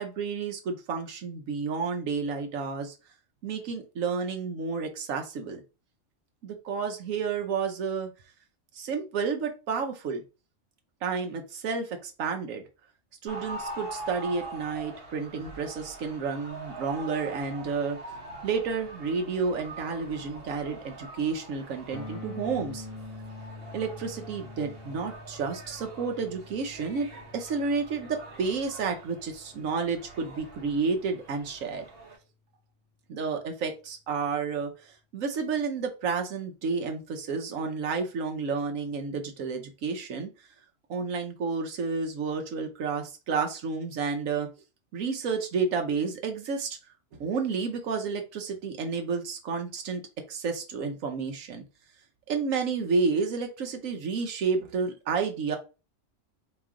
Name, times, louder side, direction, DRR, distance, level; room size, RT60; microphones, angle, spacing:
voice 1, 0.0-2.9 3.4-5.6 6.4-8.1 8.7-10.2 11.0-12.6 13.2-18.0 18.4-22.8 23.7-27.1 27.3-31.8 33.1-40.3 40.9-44.5 44.9-46.7 47.1-50.0 50.3-51.6 52.3-55.6, right 5 dB, 90° right, 4 dB, 1.2 m, -31 dB
sound 1, 13.3-32.2, right 2 dB, 50° right, 1.3 m, -44 dB
sound 2, 21.9-31.8, left 3 dB, 55° left, 1.0 m, -46 dB
4.3 x 3.1 x 3.7 m, 0.31 s
omnidirectional pair, 1.3 m